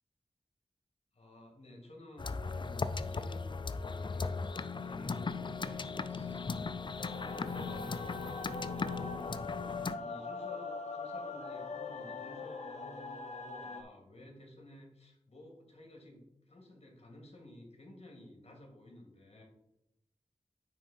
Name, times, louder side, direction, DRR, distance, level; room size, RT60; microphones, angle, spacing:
voice 1, 1.1-6.5 7.2-9.4 9.7-19.4, left 1 dB, 60° left, 1 dB, 2.4 m, -54 dB
sound 1, 2.2-10.0, left 4 dB, 40° left, 0.4 m, -37 dB
sound 2, 7.0-13.8, left 3 dB, 85° left, 1.0 m, -42 dB
9.0 x 3.6 x 5.7 m, 0.85 s
wide cardioid pair, 70°, 12 cm